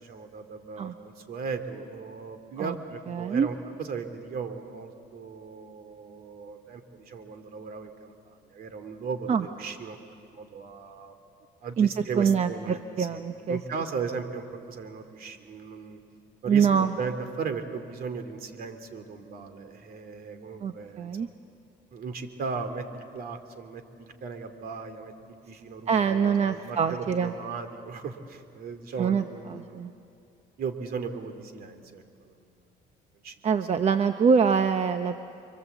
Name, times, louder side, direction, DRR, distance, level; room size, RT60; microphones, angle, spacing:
voice 1, 0.0-10.0 10.3-11.1 11.6-12.8 13.1-13.2 13.5-16.0 16.4-21.3 21.9-29.8 30.6-32.4 33.2-33.3, right 5 dB, 60° right, 7 dB, 2.8 m, -37 dB
voice 2, 3.1-3.5 9.3-9.4 11.8-11.9 12.2-13.6 16.5-16.9 20.6-21.3 25.9-27.3 29.0-29.9 33.4-35.2, right 6 dB, 40° right, 8 dB, 0.9 m, -24 dB
30.0 x 23.5 x 8.2 m, 2.5 s
cardioid pair, 110°, 17 cm